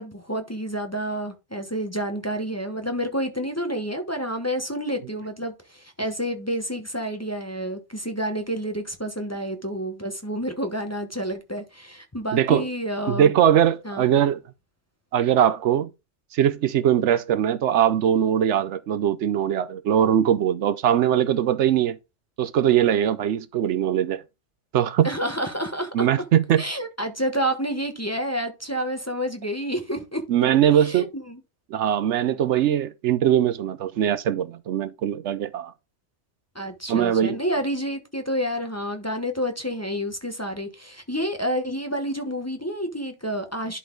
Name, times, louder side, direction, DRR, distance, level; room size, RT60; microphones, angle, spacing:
voice 1, 0.0-13.3 13.8-14.1 25.0-26.1 26.6-30.2 30.7-31.4 36.5-43.8, equal, 15° left, 1.0 m, -29 dB
voice 2, 12.3-12.7 13.1-14.4 15.1-15.9 16.3-22.0 22.4-24.2 24.7-25.1 25.9-26.6 30.3-31.1 31.7-35.7 36.9-37.4, right 10 dB, 75° right, 0.9 m, -21 dB
11.0 x 4.1 x 3.8 m
omnidirectional pair, 1.2 m